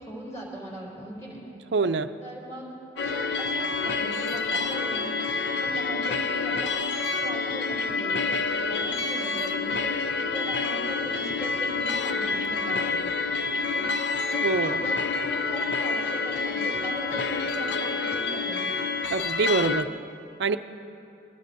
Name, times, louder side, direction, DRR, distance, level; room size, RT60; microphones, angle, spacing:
voice 1, 0.0-1.4 2.2-5.2 5.5-6.8 7.2-12.9 13.5-13.9 14.3-18.7, right 1 dB, 15° left, -5 dB, 3.4 m, -40 dB
voice 2, 1.7-2.1 14.4-14.8 19.1-19.9 20.4-20.6, right 4 dB, 65° right, 10 dB, 0.5 m, -25 dB
sound 1, 3.0-19.8, left 4 dB, 65° left, 0.6 m, -28 dB
21.5 x 20.5 x 2.7 m, 2.7 s
head